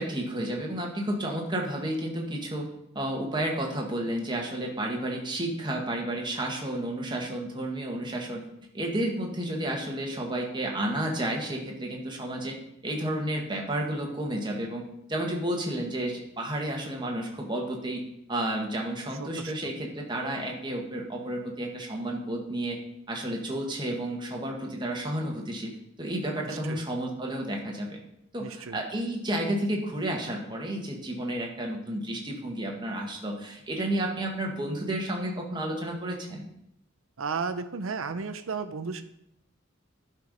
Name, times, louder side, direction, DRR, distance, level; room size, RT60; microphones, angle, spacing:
voice 1, 0.0-2.7 2.9-8.4 8.7-12.6 12.8-14.8 15.1-18.0 18.3-22.8 23.1-28.0 28.3-36.5, right 1 dB, 25° right, 0 dB, 1.6 m, -31 dB
voice 2, 19.2-19.5 26.7-26.8 28.4-28.8 37.2-39.0, right 4 dB, 90° right, 10 dB, 0.7 m, -33 dB
11.5 x 4.6 x 5.3 m, 0.77 s
head